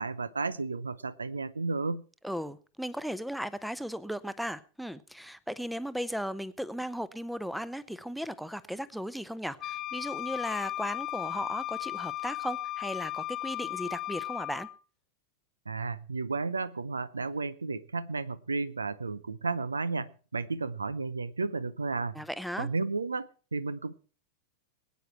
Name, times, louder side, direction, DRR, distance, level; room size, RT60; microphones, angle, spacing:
voice 1, 0.0-2.0 15.7-22.2 22.6-23.9, right 3 dB, 75° right, 19 dB, 0.7 m, -33 dB
voice 2, 2.2-14.7 22.1-22.7, equal, ahead, 17 dB, 0.8 m, -36 dB
Wind instrument woodwind instrument, 9.6-14.7, left 15 dB, 30° left, 1.0 m, -36 dB
21.5 x 9.3 x 4.5 m, 0.39 s
figure-of-eight pair, 90°, 0 cm